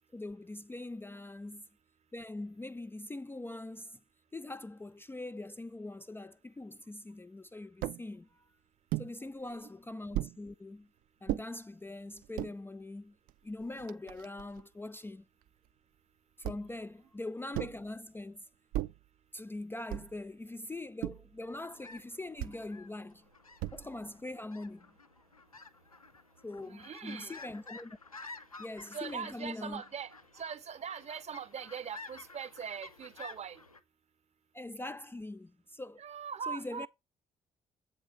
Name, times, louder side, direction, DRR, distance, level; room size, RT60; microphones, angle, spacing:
voice 1, 0.1-1.7 2.1-4.0 4.3-8.5 9.0-10.9 11.2-13.2 13.4-15.3 16.4-18.5 19.3-23.3 23.7-25.0 26.4-28.0 28.6-29.8 34.5-36.0 36.5-36.9, left 2 dB, 10° left, 0.4 m, -42 dB
sound 1, 7.8-8.0 8.9-9.1 10.1-10.4 11.3-11.5 12.2-12.5 13.3-13.4 13.6-14.6 16.4-16.8 17.5-17.9 18.7-19.1 19.9-20.2 21.0-21.4 22.4-22.6 23.6-24.0, right 14 dB, 55° right, 0.4 m, -37 dB
sound 2, 21.4-33.8, left 3 dB, 90° left, 0.4 m, -52 dB
voice 2, 26.6-27.4 28.9-33.6 36.0-36.9, right 7 dB, 40° right, 0.8 m, -41 dB
8.5 x 3.9 x 6.6 m
figure-of-eight pair, 40°, 18 cm